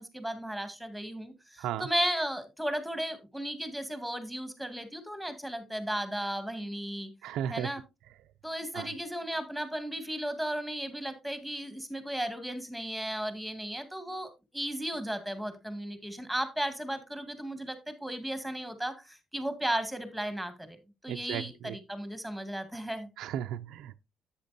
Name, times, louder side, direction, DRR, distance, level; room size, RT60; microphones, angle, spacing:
voice 1, 0.0-7.1 7.5-7.8 8.4-23.1, right 1 dB, ahead, 2.1 m, -35 dB
voice 2, 7.2-7.7 8.7-8.9 21.1-21.8 23.2-24.0, right 10 dB, 90° right, 0.4 m, -35 dB
10.5 x 8.4 x 2.6 m
cardioid pair, 90°, 0 cm